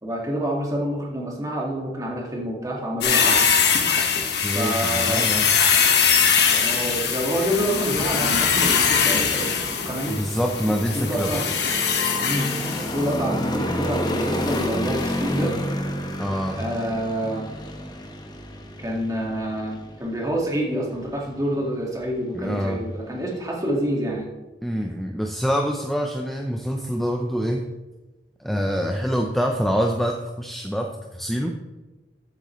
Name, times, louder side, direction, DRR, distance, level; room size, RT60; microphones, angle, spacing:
voice 1, 0.0-3.5 4.5-5.3 6.5-10.2 11.0-11.5 12.2-12.6 12.9-15.6 16.6-17.5 18.8-24.3, right 1 dB, 20° right, -1 dB, 1.9 m, -27 dB
sound 1, 3.0-13.2 14.4-14.7 15.0-15.1, left 6 dB, 60° left, 1.4 m, -22 dB
voice 2, 4.4-5.7 10.1-11.3 16.2-16.6 22.3-22.8 24.6-27.6 28.4-31.5, equal, ahead, 2 dB, 0.6 m, -25 dB
sound 2, 5.4-24.2, equal, 20° left, 1.0 m, -32 dB
13.5 x 8.0 x 3.1 m, 1.1 s
head